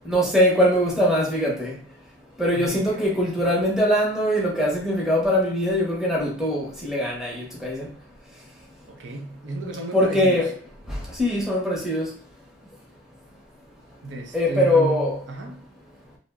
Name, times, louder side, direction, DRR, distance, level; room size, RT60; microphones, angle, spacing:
voice 1, 0.0-1.8 2.4-7.9 9.9-10.5 10.9-12.1 14.3-15.2, equal, 5° right, 0.7 m, -22 dB
voice 2, 2.5-3.5 8.9-10.5 14.0-15.7, right 2 dB, 80° right, 0.6 m, -33 dB
2.4 x 2.0 x 3.4 m
head